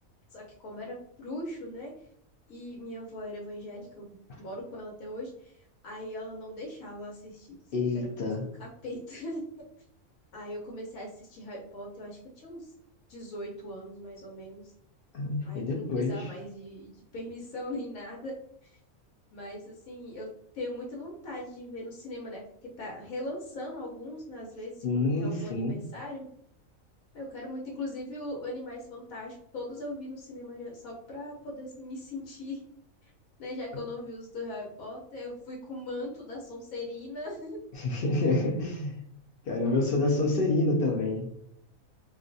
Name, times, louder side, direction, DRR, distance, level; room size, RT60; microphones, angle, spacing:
voice 1, 0.3-1.0 1.2-1.9 2.5-5.6 5.8-7.6 8.2-9.4 10.3-12.7 13.1-14.7 15.4-18.3 18.6-18.8 19.3-20.3 20.5-22.4 22.8-26.3 27.1-32.6 33.4-37.6, left 1 dB, 90° left, -3 dB, 1.2 m, -40 dB
voice 2, 7.7-8.5 15.1-16.3 24.8-25.8 37.7-38.9 39.5-41.3, left 2 dB, 60° left, 1 dB, 0.6 m, -27 dB
2.5 x 2.3 x 2.5 m, 0.71 s
omnidirectional pair, 1.4 m